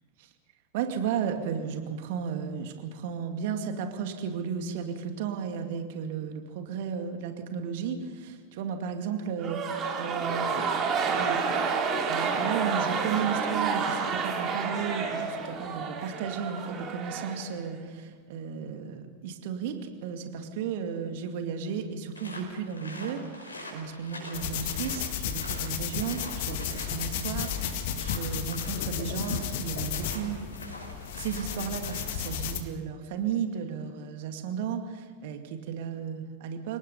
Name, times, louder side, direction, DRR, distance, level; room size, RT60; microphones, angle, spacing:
voice 1, 0.7-10.8 11.1-11.7 12.1-36.8, right 7 dB, 50° right, 6 dB, 2.4 m, -34 dB
sound 1, 9.4-17.8, right 5 dB, 30° right, 3.7 m, -29 dB
sound 2, 22.1-32.5, left 1 dB, 75° left, 5.2 m, -45 dB
sound 3, 24.3-32.6, left 9 dB, 50° left, 1.9 m, -33 dB
28.5 x 18.5 x 5.6 m, 1.5 s
figure-of-eight pair, 90°, 0 cm